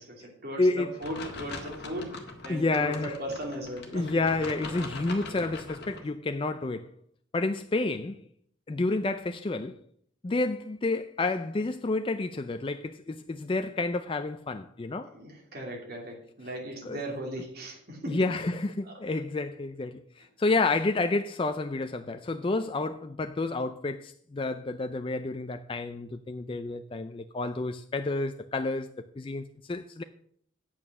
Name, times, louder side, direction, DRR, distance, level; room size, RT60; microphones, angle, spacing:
voice 1, 0.0-4.3 15.0-18.4 18.8-19.0, equal, 50° right, 2.8 m, -38 dB
voice 2, 0.6-1.0 2.5-3.2 3.9-6.9 7.3-8.2 8.7-9.7 10.2-15.1 16.8-17.0 18.1-28.9 29.2-30.0, left 3 dB, 25° left, 0.4 m, -30 dB
sound 1, 1.0-6.0, left 3 dB, 50° left, 1.6 m, -41 dB
8.8 x 8.8 x 5.9 m
head